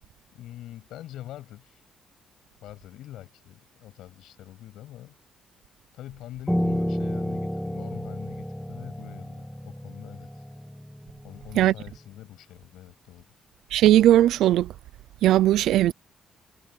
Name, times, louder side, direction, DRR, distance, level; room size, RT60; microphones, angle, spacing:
voice 1, 0.3-1.8 2.6-5.1 5.9-10.4 11.2-13.3, left 13 dB, 85° left, 7.8 m, -44 dB
Piano, 6.5-11.8, equal, 5° left, 1.6 m, -31 dB
voice 2, 13.7-14.7 15.2-15.9, right 13 dB, 85° right, 0.4 m, -18 dB
cardioid pair, 90°, 0 cm